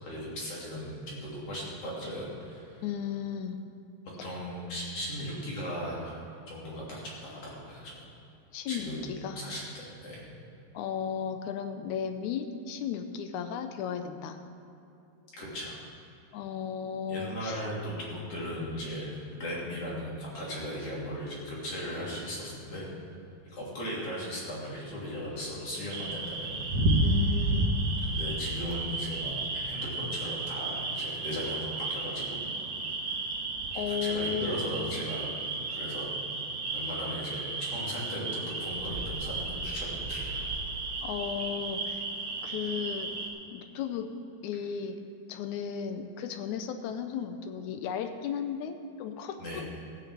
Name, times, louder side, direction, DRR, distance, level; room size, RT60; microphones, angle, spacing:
voice 1, 0.0-2.8 4.2-8.0 8.7-10.2 15.3-15.8 17.1-22.9 23.4-26.7 28.0-32.4 33.7-35.3 35.7-36.1 36.7-40.4 49.4-49.6, equal, 45° left, -5 dB, 3.7 m, -37 dB
voice 2, 2.8-3.6 8.5-9.4 10.7-14.4 16.3-17.7 27.0-27.8 33.7-34.6 41.0-42.0 42.4-43.1 43.5-44.1 44.4-45.0 45.3-49.6, left 8 dB, 80° left, 7 dB, 1.7 m, -35 dB
sound 1, 25.9-43.3, right 2 dB, 55° right, 2.0 m, -33 dB
Bird, 38.7-41.2, right 1 dB, 90° right, 0.5 m, -41 dB
14.5 x 6.7 x 7.5 m, 2.8 s
omnidirectional pair, 4.1 m